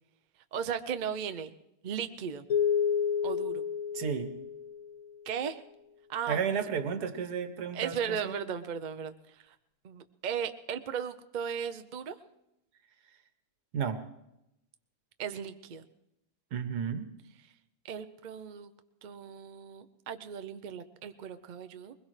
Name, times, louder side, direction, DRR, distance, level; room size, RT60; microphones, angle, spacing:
voice 1, 0.5-1.5 1.8-2.4 3.2-3.7 5.3-5.6 6.1-6.4 7.7-9.6 9.8-12.2 15.2-15.8 17.8-18.7 19.0-21.9, right 7 dB, 55° right, 9 dB, 0.5 m, -36 dB
sound 1, 2.5-5.1, left 7 dB, 60° left, 1.4 m, -30 dB
voice 2, 3.9-4.3 6.3-8.4 13.7-14.0 16.5-17.1, right 7 dB, 80° right, 9 dB, 1.6 m, -32 dB
21.5 x 20.5 x 3.2 m, 0.85 s
omnidirectional pair, 1.7 m